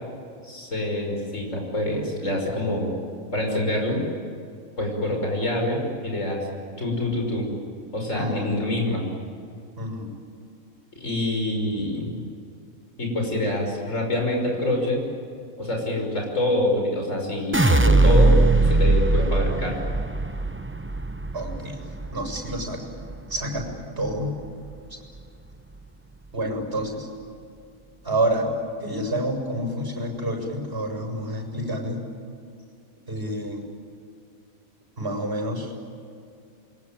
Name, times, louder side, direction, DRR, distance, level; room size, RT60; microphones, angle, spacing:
voice 1, 0.4-2.9 3.3-4.0 4.8-6.5 6.8-7.5 7.9-9.0 11.0-12.1 13.0-15.0 15.6-18.3 18.6-19.8, left 1 dB, 60° left, 1 dB, 6.1 m, -26 dB
voice 2, 8.1-8.5 9.8-10.1 21.3-21.8 22.1-22.8 23.3-23.7 24.0-24.4 24.9-25.0 26.3-27.1 28.0-28.5 28.8-32.0 33.1-33.6 35.0-35.7, right 1 dB, 45° right, 2 dB, 7.3 m, -28 dB
sound 1, 17.5-23.7 24.1-24.7, right 2 dB, 20° right, 0.4 m, -21 dB
28.0 x 23.5 x 9.0 m, 2.4 s
omnidirectional pair, 1.5 m